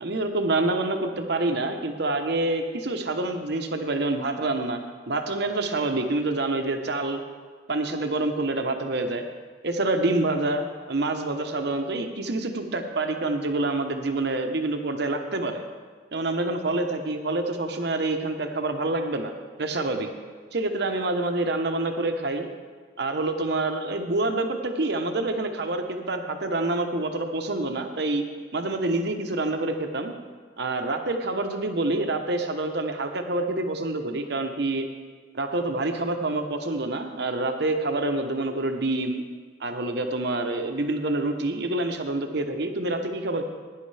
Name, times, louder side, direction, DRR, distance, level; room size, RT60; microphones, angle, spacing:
voice 1, 0.0-4.8 5.1-7.2 7.7-9.2 9.6-15.6 16.1-19.3 19.6-20.1 20.5-22.5 23.0-28.2 28.5-30.1 30.6-34.9 35.3-39.2 39.6-43.4, right 2 dB, 60° right, 5 dB, 1.0 m, -27 dB
17.0 x 10.0 x 3.4 m, 1.5 s
head